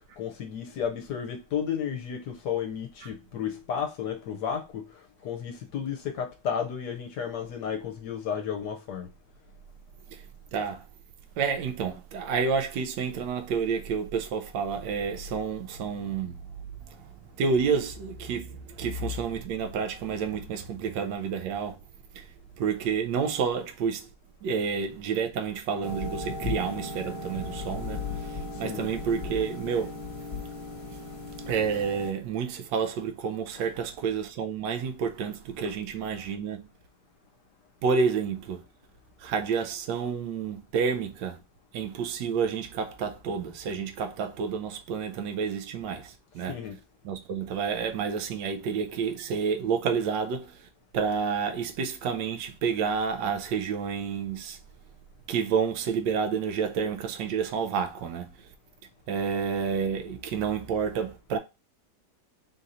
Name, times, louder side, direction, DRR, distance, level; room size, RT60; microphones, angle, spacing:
voice 1, 0.2-4.8 5.2-9.1 28.6-28.9 46.5-46.8, left 8 dB, 70° left, 1.2 m, -32 dB
voice 2, 10.5-10.8 11.4-16.4 16.9-17.0 17.4-21.8 22.2-22.3 22.6-24.1 24.4-30.0 31.4-36.7 37.8-38.6 39.2-41.4 41.7-46.6 47.0-50.7 50.9-54.6 55.3-58.3 59.1-61.4, right 6 dB, 85° right, 1.3 m, -29 dB
sound 1, 25.8-32.1, left 3 dB, 45° left, 0.4 m, -36 dB
3.8 x 2.6 x 4.2 m
omnidirectional pair, 1.9 m